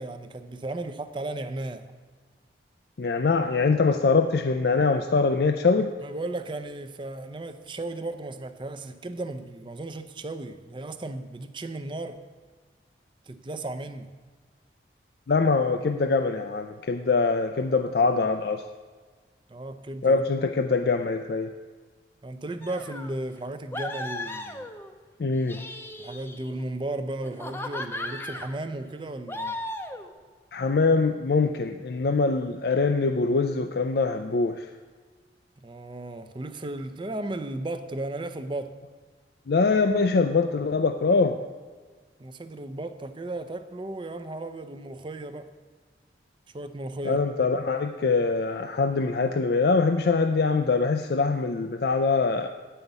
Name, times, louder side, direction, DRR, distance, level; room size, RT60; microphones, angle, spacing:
voice 1, 0.0-1.9 6.0-12.2 13.3-14.2 19.5-20.5 22.2-24.7 26.0-29.6 35.6-38.8 42.2-45.5 46.5-47.2, right 2 dB, 25° right, 10 dB, 0.5 m, -35 dB
voice 2, 3.0-5.9 15.3-18.6 20.0-21.5 25.2-25.6 30.5-34.7 39.5-41.4 47.0-52.5, left 4 dB, 60° left, 5 dB, 0.4 m, -23 dB
sound 1, 22.6-23.1 23.7-24.9 25.3-26.6 27.2-28.5 29.3-30.1, left 2 dB, 15° left, 0.6 m, -36 dB
9.2 x 5.6 x 8.0 m, 1.5 s
head